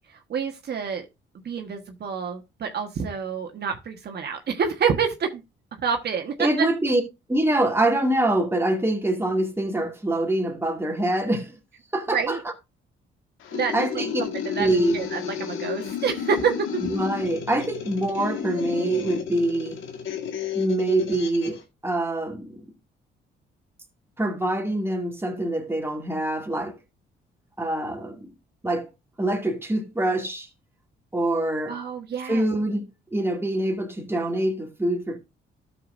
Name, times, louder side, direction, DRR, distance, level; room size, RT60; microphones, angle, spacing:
voice 1, 0.3-1.0 1.4-5.4 5.8-6.7 12.1-12.4 13.5-16.8 31.7-32.5, right 6 dB, 55° right, 1.4 m, -28 dB
voice 2, 6.4-7.0 7.3-11.6 11.9-12.5 13.7-14.2 14.5-15.0 16.8-19.8 20.5-22.6 24.2-26.8 27.6-28.3 28.6-28.9 29.2-30.5 31.1-31.8 32.3-32.8 33.1-35.2, right 1 dB, 10° right, 2.3 m, -25 dB
sound 1, 13.4-21.6, left 8 dB, 85° left, 1.8 m, -32 dB
12.5 x 6.9 x 2.6 m
cardioid pair, 90°, 20 cm